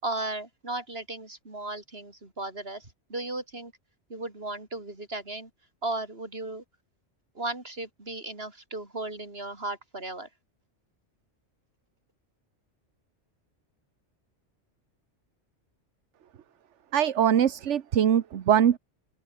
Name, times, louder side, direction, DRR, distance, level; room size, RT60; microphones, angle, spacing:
voice 1, 0.0-3.7 4.1-5.5 5.8-6.6 7.3-10.3, right 2 dB, 55° right, 4.8 m, -35 dB
voice 2, 16.9-18.8, right 9 dB, 80° right, 1.2 m, -22 dB
open air
omnidirectional pair, 1.2 m